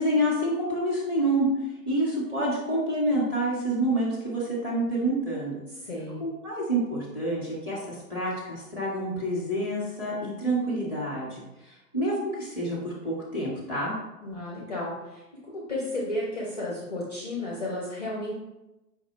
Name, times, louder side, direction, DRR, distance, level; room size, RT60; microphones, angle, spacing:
voice 1, 0.0-1.5 1.8-5.6 6.2-13.9, right 1 dB, 15° right, -6 dB, 0.8 m, -28 dB
voice 2, 5.7-6.2 14.2-18.4, left 1 dB, 25° left, -5 dB, 0.5 m, -33 dB
5.1 x 2.1 x 4.0 m, 0.98 s
hypercardioid pair, 155°, 50 cm